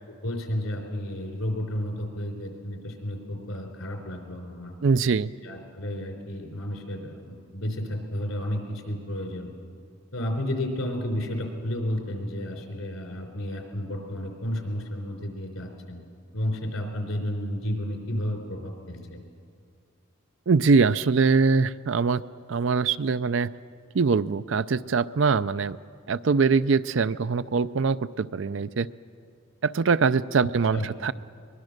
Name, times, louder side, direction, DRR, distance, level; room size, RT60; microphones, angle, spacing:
voice 1, 0.2-4.7 5.4-9.5 10.1-16.0 16.3-19.2 30.7-30.9, left 1 dB, 90° left, 3 dB, 3.9 m, -32 dB
voice 2, 4.8-5.3 20.5-22.2 22.5-23.5 23.9-25.8 26.1-28.9 29.6-31.1, right 4 dB, 70° right, 15 dB, 0.5 m, -23 dB
23.0 x 21.5 x 6.6 m, 2.3 s
head